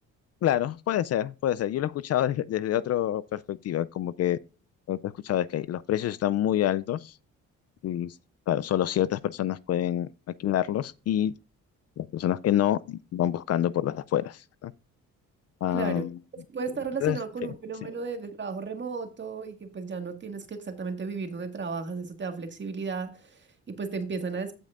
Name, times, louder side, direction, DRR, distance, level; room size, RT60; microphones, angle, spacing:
voice 1, 0.4-4.4 4.9-7.1 7.8-8.1 8.5-10.1 10.4-11.3 12.0-14.7 15.6-16.1 17.0-17.2, left 12 dB, 55° left, 0.4 m, -27 dB
voice 2, 15.7-16.1 16.5-24.5, right 4 dB, 40° right, 1.9 m, -34 dB
16.0 x 5.3 x 2.5 m
cardioid pair, 90°, 30 cm